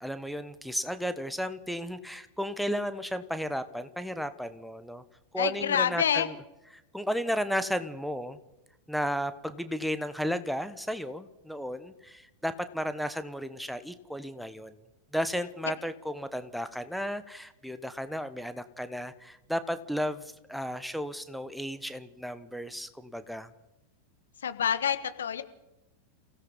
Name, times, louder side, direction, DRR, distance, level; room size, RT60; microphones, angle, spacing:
voice 1, 0.0-5.0 5.3-6.3 6.9-8.4 8.9-14.8 15.1-23.5, equal, ahead, 11 dB, 1.2 m, -34 dB
voice 2, 5.4-6.3 24.4-25.4, left 8 dB, 65° left, 10 dB, 1.5 m, -27 dB
29.0 x 17.0 x 5.5 m, 0.96 s
figure-of-eight pair, 90°, 0 cm